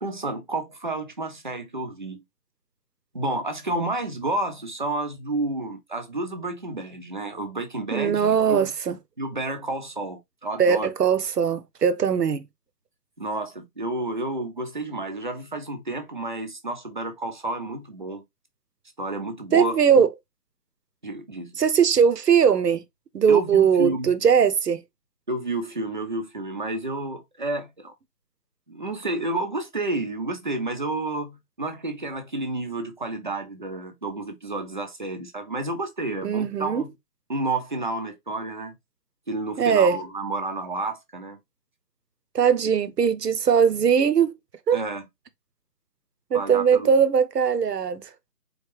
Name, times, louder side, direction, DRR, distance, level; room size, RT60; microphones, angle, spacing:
voice 1, 0.0-2.2 3.1-8.7 9.2-10.9 13.2-18.2 19.0-20.1 21.0-21.5 23.3-24.1 25.3-27.9 28.7-36.9 37.3-38.7 39.3-41.4 44.7-45.0 46.3-46.9, right 2 dB, 30° right, 0.6 m, -30 dB
voice 2, 7.9-9.0 10.6-12.5 19.5-20.1 21.6-22.8 23.1-24.8 36.2-36.8 39.6-40.0 42.3-44.3 44.7-44.8 46.3-48.0, right 7 dB, 75° right, 0.9 m, -20 dB
4.3 x 3.3 x 3.2 m
hypercardioid pair, 165°, 48 cm